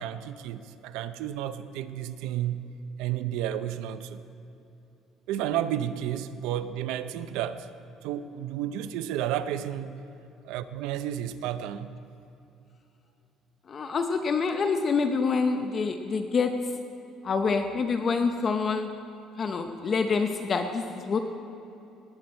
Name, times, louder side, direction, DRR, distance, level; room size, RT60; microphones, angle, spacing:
voice 1, 0.0-2.7 3.0-4.2 5.3-7.7 8.0-10.0 10.4-12.0, right 11 dB, 90° right, 12 dB, 0.5 m, -32 dB
voice 2, 13.7-16.5 17.2-18.9 19.4-21.2, left 5 dB, 35° left, 6 dB, 0.7 m, -26 dB
18.5 x 9.6 x 4.4 m, 2.8 s
cardioid pair, 135°, 0 cm